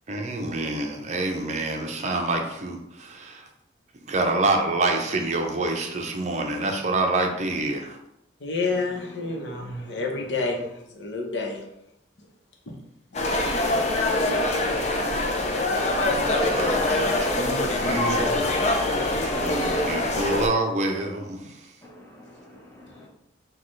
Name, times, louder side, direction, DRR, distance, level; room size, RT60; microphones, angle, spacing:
voice 1, 0.1-3.5 4.1-8.0 16.0-18.4 18.6-19.0 19.4-21.6, right 2 dB, 40° right, 3 dB, 0.6 m, -27 dB
voice 2, 8.4-11.7 12.2-12.3 12.7-12.8 13.1-13.2 17.8-17.9, left 3 dB, 85° left, 1 dB, 0.8 m, -30 dB
voice 3, 9.4-10.0 21.8-23.1, right 1 dB, 15° left, -3 dB, 1.0 m, -42 dB
sound 1, 13.1-20.5, left 2 dB, 40° left, 0.5 m, -24 dB
6.1 x 2.3 x 3.1 m, 0.82 s
head